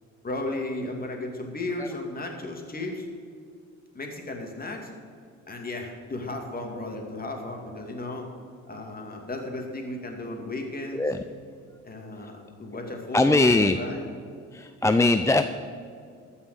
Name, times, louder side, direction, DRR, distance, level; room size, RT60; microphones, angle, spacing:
voice 1, 0.2-3.1 3.9-4.9 5.5-8.3 8.7-11.1 11.8-14.1, left 2 dB, 30° left, 2 dB, 2.5 m, -34 dB
voice 2, 13.1-13.8 14.5-15.4, left 2 dB, 10° left, 8 dB, 0.4 m, -20 dB
14.0 x 5.6 x 8.3 m, 2.2 s
cardioid pair, 90°, 30 cm